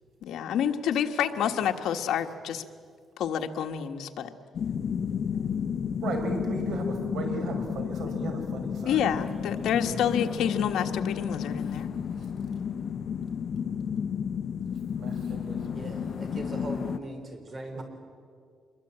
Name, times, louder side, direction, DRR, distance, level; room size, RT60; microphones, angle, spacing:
voice 1, 0.2-2.6 3.2-4.3 8.8-11.9, left 9 dB, 85° left, 5 dB, 1.5 m, -28 dB
sound 1, 4.5-17.0, left 7 dB, 55° left, 1.0 m, -32 dB
voice 2, 6.0-10.4 12.2-12.3 15.0-15.8 17.7-17.8, right 2 dB, 75° right, 4 dB, 5.4 m, -36 dB
voice 3, 15.7-17.8, right 1 dB, 35° right, 5 dB, 4.5 m, -39 dB
26.0 x 22.0 x 8.8 m, 2.1 s
cardioid pair, 135°, 0 cm